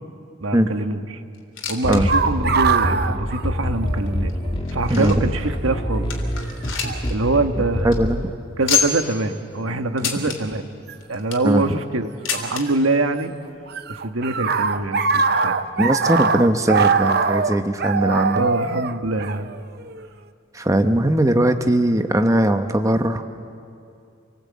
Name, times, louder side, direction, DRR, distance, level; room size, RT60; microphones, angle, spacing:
voice 1, 0.4-1.2 1.7-4.3 4.7-6.1 7.1-8.0 8.6-10.7 11.1-13.3 13.9-15.6 18.0-19.5, right 2 dB, 75° right, 7 dB, 1.4 m, -24 dB
sound 1, 1.3-2.0 2.3-2.4 3.1-3.2 3.9-5.4 5.8-5.9 6.1-7.1 7.4-7.5 7.8-8.0 8.7-9.2 10.0-10.4 11.0-11.5 12.3-12.6 13.6-13.7 13.9-14.0 14.8-14.9, left 7 dB, 65° left, 3.4 m, -26 dB
sound 2, 1.8-8.2, equal, 25° left, 2.2 m, -26 dB
sound 3, 2.1-4.2 4.4-4.5 5.5-5.8 6.8-7.0 7.8-8.2 10.9-11.0 12.3-13.2 13.5-20.0, right 5 dB, 50° right, 0.8 m, -22 dB
voice 2, 7.8-8.2 11.4-11.8 15.8-18.5 20.5-23.2, right 1 dB, 15° right, 7 dB, 0.9 m, -19 dB
28.0 x 19.0 x 8.6 m, 2.5 s
head